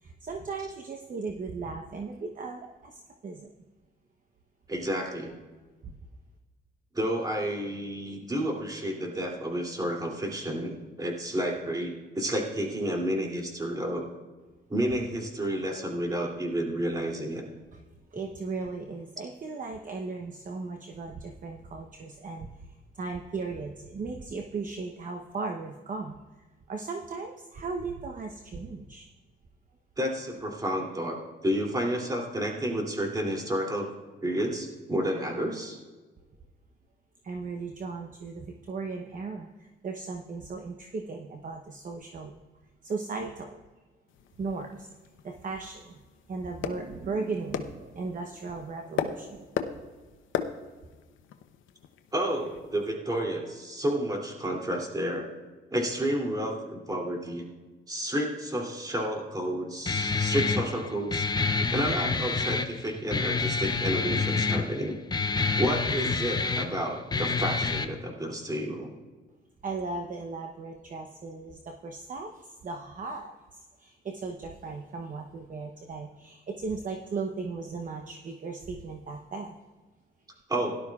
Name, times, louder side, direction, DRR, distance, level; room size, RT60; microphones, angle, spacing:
voice 1, 0.0-3.5 5.8-5.9 18.1-22.7 22.9-29.1 37.2-42.3 42.8-43.6 44.4-44.9 45.2-46.0 46.3-49.7 69.6-73.3 73.8-79.6, right 4 dB, 40° right, 4 dB, 0.9 m, -37 dB
voice 2, 4.7-5.3 6.9-14.1 14.7-17.4 30.0-31.2 31.4-33.9 34.2-35.8 52.1-55.3 55.7-57.5 57.9-61.3 61.7-65.0 65.6-68.9 80.5-80.8, equal, 20° right, 0 dB, 2.8 m, -30 dB
sound 1, 44.1-52.9, left 8 dB, 80° left, 0.8 m, -38 dB
Guitar, 59.9-67.9, left 4 dB, 20° left, 0.7 m, -28 dB
17.0 x 12.0 x 2.4 m, 1.3 s
cardioid pair, 90°, 20 cm